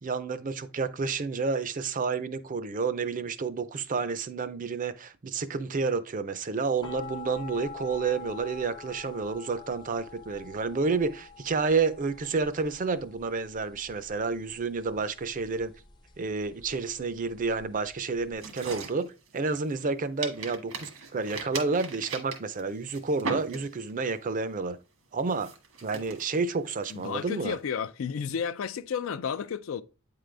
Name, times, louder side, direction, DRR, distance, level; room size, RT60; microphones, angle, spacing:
voice 1, 0.0-15.7 16.2-24.8 25.1-25.5 25.8-27.6, right 4 dB, 40° right, 0.5 m, -30 dB
sound 1, 6.8-18.3, left 6 dB, 20° left, 0.6 m, -46 dB
sound 2, 18.4-19.9 20.2-24.0 24.4-24.7 25.2-27.5, right 4 dB, 85° right, 1.5 m, -39 dB
voice 2, 26.9-29.8, left 7 dB, 70° left, 0.4 m, -32 dB
8.6 x 3.8 x 3.3 m
head